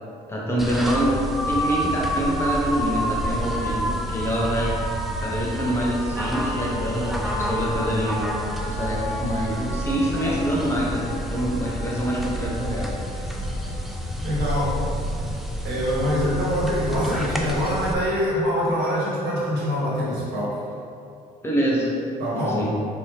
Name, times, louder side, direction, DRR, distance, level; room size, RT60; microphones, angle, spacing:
voice 1, 0.3-1.1 1.5-4.8 5.2-8.2 8.6-12.9 21.4-21.9 22.3-22.7, equal, 15° left, -5 dB, 0.8 m, -25 dB
sound 1, 0.6-17.9, equal, ahead, 0.4 m, -28 dB
voice 2, 14.2-15.3 15.6-20.6 22.2-22.6, equal, 75° right, -6 dB, 1.5 m, -24 dB
5.2 x 2.8 x 3.3 m, 2.6 s
cardioid pair, 110°, 17 cm